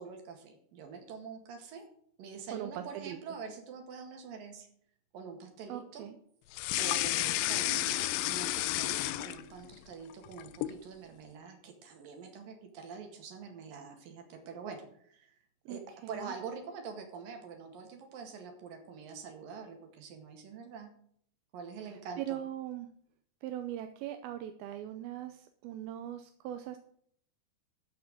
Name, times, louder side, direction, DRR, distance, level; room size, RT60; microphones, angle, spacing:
voice 1, 0.0-1.8 2.2-4.7 5.1-6.0 6.8-15.4 15.7-15.8 16.1-20.9 21.5-22.4, right 5 dB, 60° right, 4 dB, 3.4 m, -45 dB
voice 2, 2.5-3.2 5.7-6.2 15.7-16.3 22.2-22.9 23.4-26.8, right 12 dB, 80° right, 7 dB, 2.3 m, -40 dB
sound 1, 6.5-9.7 10.1-10.8, left 16 dB, 85° left, 2.5 m, -31 dB
14.0 x 4.7 x 7.7 m, 0.63 s
omnidirectional pair, 4.7 m